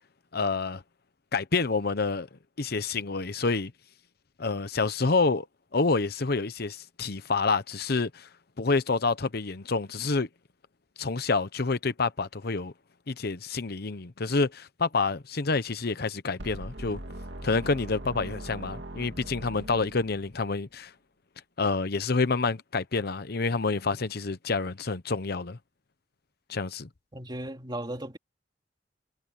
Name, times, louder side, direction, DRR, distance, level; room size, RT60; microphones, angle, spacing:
voice 1, 0.3-0.8 1.3-2.3 2.6-3.7 4.4-5.5 5.7-8.3 8.6-10.3 11.0-12.7 13.1-17.0 17.4-20.9 21.6-25.6 26.5-26.9, left 4 dB, 60° left, 0.9 m, -28 dB
sound 1, 16.4-20.4, right 1 dB, 75° right, 2.3 m, -41 dB
voice 2, 27.1-28.2, right 1 dB, 25° right, 3.3 m, -36 dB
head